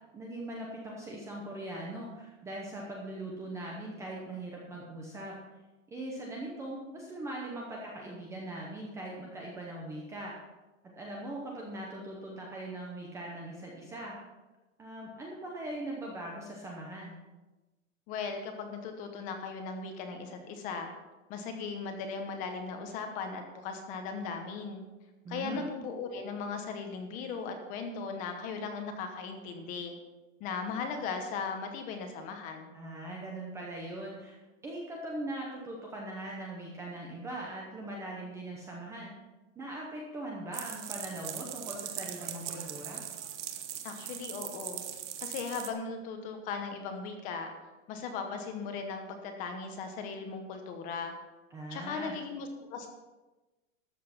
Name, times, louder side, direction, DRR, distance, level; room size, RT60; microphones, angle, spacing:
voice 1, 0.1-5.4 5.9-10.3 10.8-14.2 14.8-17.1 25.2-25.6 32.7-34.4 34.6-39.1 39.6-43.0 51.5-52.2, right 1 dB, 5° right, -2 dB, 0.7 m, -40 dB
voice 2, 18.1-20.9 21.3-24.8 25.3-30.0 30.4-32.7 43.8-44.8 45.2-47.5 47.9-51.1 51.7-52.9, left 5 dB, 20° left, 5 dB, 1.0 m, -38 dB
sound 1, 40.5-45.7, right 10 dB, 60° right, 1.4 m, -40 dB
13.0 x 7.4 x 5.8 m, 1.1 s
supercardioid pair, 180°, 39 cm